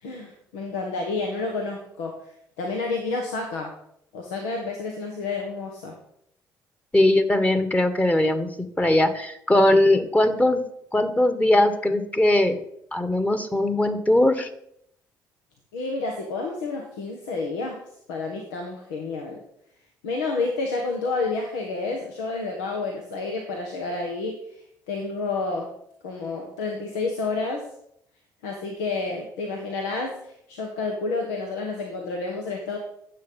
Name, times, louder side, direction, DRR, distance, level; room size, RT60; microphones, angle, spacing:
voice 1, 0.0-3.7 4.1-6.0 15.7-17.8 18.1-19.4 20.0-25.7 26.0-27.7 28.4-32.8, left 3 dB, 85° left, 2 dB, 1.3 m, -30 dB
voice 2, 6.9-10.6 10.9-12.6 12.9-14.5, left 1 dB, 15° left, 9 dB, 1.6 m, -20 dB
9.5 x 7.4 x 5.5 m, 0.74 s
hypercardioid pair, 60°, 9 cm